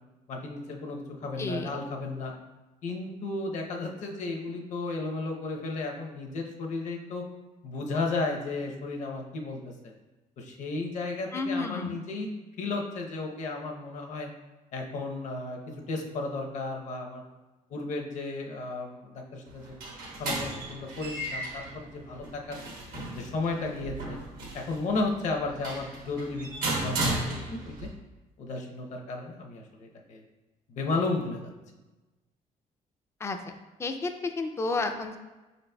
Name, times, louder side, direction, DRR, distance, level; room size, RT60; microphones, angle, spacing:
voice 1, 0.3-2.3 2.8-7.2 7.6-9.9 10.4-12.3 12.6-14.3 14.7-15.6 15.9-17.2 17.7-19.7 20.2-22.6 23.1-24.2 24.5-27.9 28.4-30.2 30.7-31.5, left 3 dB, 55° left, 1 dB, 0.7 m, -34 dB
voice 2, 1.4-1.7 11.3-12.0 33.2-33.4 33.8-35.2, left 3 dB, 20° left, 6 dB, 0.3 m, -31 dB
sound 1, 19.5-27.9, right 2 dB, 85° right, 1.2 m, -35 dB
5.3 x 4.0 x 2.2 m, 1.1 s
cardioid pair, 150°, 14 cm